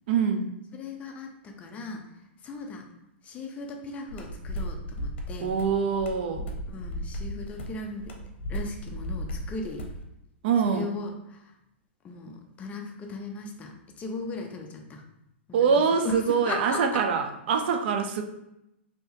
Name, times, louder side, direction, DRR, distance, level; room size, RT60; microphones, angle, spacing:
voice 1, 0.1-0.5 5.4-6.5 10.4-10.9 15.5-18.2, right 6 dB, 60° right, 5 dB, 0.4 m, -24 dB
voice 2, 0.7-2.0 2.4-2.9 3.2-5.5 6.7-8.1 8.5-9.8 10.6-11.5 12.0-15.0 15.5-17.0, left 3 dB, 20° left, 2 dB, 0.5 m, -37 dB
sound 1, 4.1-10.0, equal, 70° left, 0.7 m, -35 dB
3.3 x 2.8 x 2.7 m, 0.84 s
hypercardioid pair, 130°, 6 cm